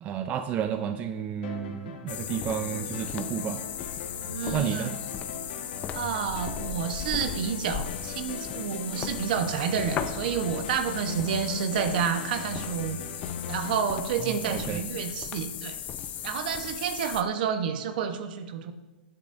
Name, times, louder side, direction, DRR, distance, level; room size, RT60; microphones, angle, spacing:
voice 1, 0.0-3.7 4.5-4.9 14.2-14.8, right 8 dB, 30° right, 8 dB, 0.5 m, -31 dB
sound 1, 1.4-15.0, left 6 dB, 65° left, 1.5 m, -40 dB
sound 2, 2.1-17.2, left 9 dB, 30° left, 0.6 m, -37 dB
voice 2, 4.3-4.9 5.9-13.0 13.5-15.8 16.2-18.7, right 7 dB, 65° right, 8 dB, 1.1 m, -29 dB
14.0 x 9.9 x 2.6 m, 1.1 s
hypercardioid pair, 135°, 5 cm